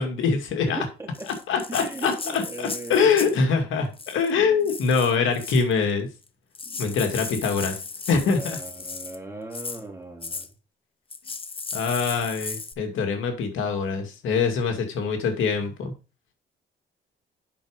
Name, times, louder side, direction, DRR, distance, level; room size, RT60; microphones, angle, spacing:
voice 1, 0.0-0.8 1.5-6.1 6.8-7.8 8.1-8.6 11.7-15.9, left 5 dB, 80° left, 5 dB, 2.3 m, -24 dB
voice 2, 0.6-1.3 1.7-3.3 4.4-4.7 6.7-6.9 8.2-10.5, right 3 dB, 15° right, 1 dB, 3.7 m, -38 dB
Rattle (instrument), 1.1-3.4 3.9-4.3 4.6-5.7 6.3-6.4 6.5-9.2 9.5-9.8 10.2-10.5 11.1-12.7, left 4 dB, 25° left, 1.1 m, -36 dB
8.6 x 6.2 x 5.1 m, 0.31 s
cardioid pair, 90°, 20 cm